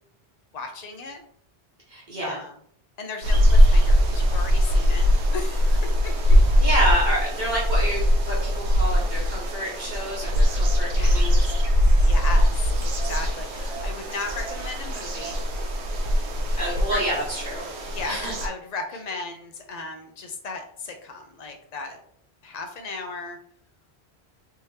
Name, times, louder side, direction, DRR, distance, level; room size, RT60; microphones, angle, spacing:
voice 1, 0.5-1.2 2.2-2.5 3.0-5.1 5.3-6.1 10.9-11.6 12.0-15.4 16.5-17.0 17.9-22.0 22.4-23.4, left 3 dB, 45° left, 4 dB, 0.7 m, -36 dB
voice 2, 1.9-2.4 6.6-11.4 16.6-17.6 18.1-18.3, right 1 dB, 45° right, -5 dB, 1.0 m, -28 dB
sound 1, 3.2-18.5, equal, 85° right, 1.0 m, -21 dB
3.5 x 2.8 x 3.2 m, 0.64 s
omnidirectional pair, 1.1 m